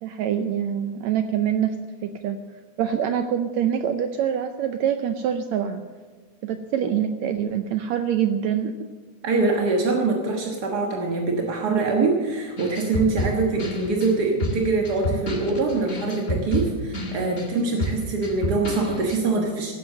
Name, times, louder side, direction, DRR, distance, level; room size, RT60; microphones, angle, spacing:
voice 1, 0.0-2.4 2.8-5.8 6.4-8.7, right 9 dB, 75° right, 8 dB, 1.6 m, -25 dB
voice 2, 9.2-19.7, right 3 dB, 50° right, 0 dB, 1.2 m, -24 dB
sound 1, 12.6-19.2, left 1 dB, 50° left, 0.7 m, -29 dB
17.0 x 7.8 x 7.4 m, 1.4 s
omnidirectional pair, 3.7 m